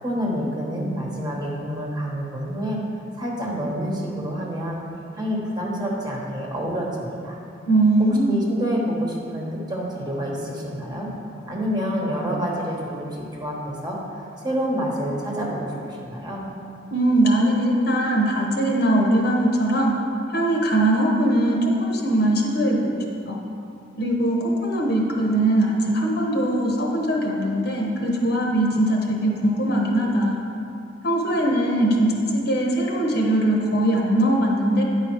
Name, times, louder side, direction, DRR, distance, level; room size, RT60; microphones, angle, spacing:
voice 1, 0.0-2.8 3.2-4.8 5.1-7.4 8.3-11.1 11.5-16.5, equal, 25° right, -3 dB, 1.2 m, -28 dB
voice 2, 7.7-8.4 16.9-20.0 20.3-23.4 24.0-30.4 31.0-34.8, right 1 dB, 60° left, -1 dB, 1.1 m, -21 dB
9.8 x 5.0 x 4.5 m, 2.7 s
head